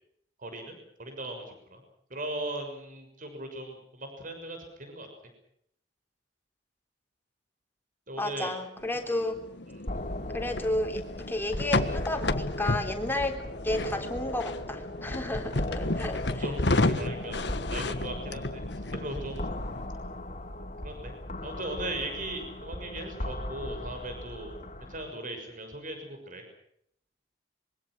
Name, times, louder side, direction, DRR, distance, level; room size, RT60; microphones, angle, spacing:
voice 1, 0.4-1.8 2.1-5.1 8.1-8.5 9.7-9.8 16.1-17.4 17.7-19.5 20.8-21.1 21.4-24.5 24.8-26.4, right 1 dB, 50° right, 6 dB, 6.4 m, -38 dB
voice 2, 8.2-9.4 10.3-16.4, left 1 dB, 10° left, 4 dB, 3.7 m, -32 dB
sound 1, 8.8-19.9, left 2 dB, 70° left, 1.4 m, -32 dB
sound 2, 9.9-25.1, left 1 dB, 40° left, 3.3 m, -38 dB
25.5 x 24.0 x 6.3 m, 0.71 s
head